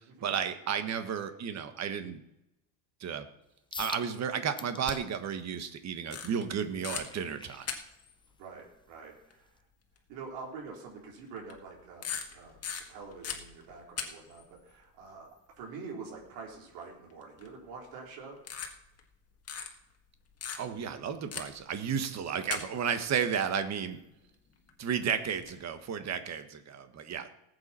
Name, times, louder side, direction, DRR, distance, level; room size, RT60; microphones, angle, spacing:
voice 1, 0.2-2.2 3.0-3.2 3.8-7.7 20.6-24.0 24.8-27.3, right 7 dB, 35° right, 9 dB, 1.3 m, -33 dB
sound 1, 3.7-4.1 4.6-5.2 5.7-8.3 8.8-9.0 9.6-9.7, left 4 dB, 10° left, 0.5 m, -44 dB
sound 2, 6.1-6.5 6.8-7.0 7.7-8.1 9.3-9.4 10.0-10.1 11.4-11.7 12.0-14.0 14.3-14.4 17.4-17.7 18.4-19.1 19.5-19.7 20.4-20.9 21.3-21.6 22.4-23.1 24.7-24.8 25.3-25.5, left 7 dB, 35° left, 1.7 m, -38 dB
voice 2, 8.4-9.5 10.1-12.6 12.9-18.4, right 4 dB, 80° right, -1 dB, 3.7 m, -46 dB
19.0 x 8.1 x 4.3 m, 0.88 s
cardioid pair, 140°, 44 cm